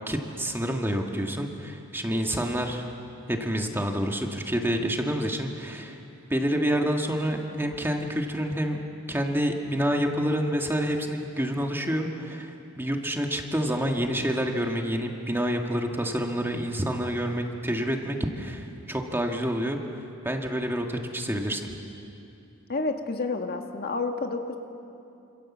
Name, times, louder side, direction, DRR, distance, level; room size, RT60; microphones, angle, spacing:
voice 1, 0.0-2.9 3.3-6.0 6.3-8.8 9.1-21.7, equal, 10° right, 2 dB, 2.0 m, -28 dB
voice 2, 22.7-24.6, left 3 dB, 45° left, 4 dB, 1.6 m, -29 dB
28.0 x 27.0 x 7.4 m, 2.7 s
head